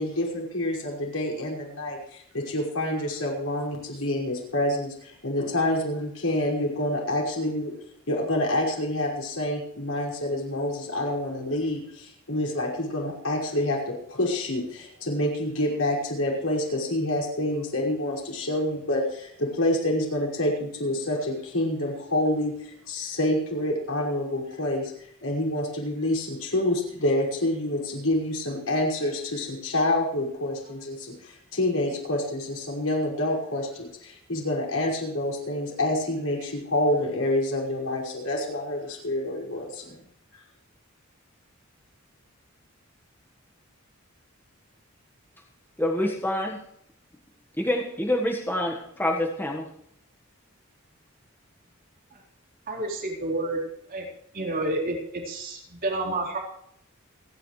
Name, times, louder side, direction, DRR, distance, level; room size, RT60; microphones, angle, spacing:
voice 1, 0.0-7.7 8.1-24.9 25.2-40.0, left 1 dB, 85° left, -2 dB, 5.7 m, -27 dB
voice 2, 45.8-46.6 47.6-49.6, left 1 dB, 10° left, 0 dB, 1.5 m, -26 dB
voice 3, 52.7-53.6 53.9-54.1 54.3-56.4, right 2 dB, 45° right, -2 dB, 4.3 m, -29 dB
29.0 x 10.5 x 3.3 m, 0.72 s
head